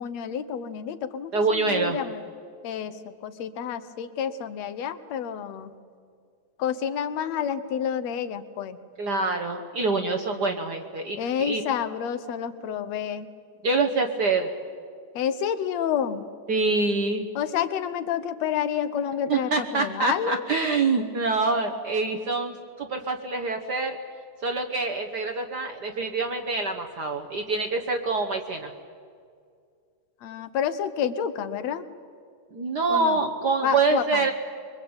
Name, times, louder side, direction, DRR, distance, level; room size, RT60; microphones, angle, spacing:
voice 1, 0.0-2.3 2.6-5.7 6.6-8.8 11.2-13.3 15.1-16.3 17.4-20.5 30.2-31.8 32.9-33.2 33.6-34.3, left 8 dB, 70° left, 12 dB, 2.1 m, -29 dB
voice 2, 1.3-2.0 9.0-11.6 13.6-14.5 16.5-17.3 19.3-24.0 24.4-28.7 32.5-34.3, right 3 dB, 50° right, 4 dB, 1.2 m, -26 dB
24.0 x 23.5 x 8.8 m, 2.2 s
omnidirectional pair, 3.3 m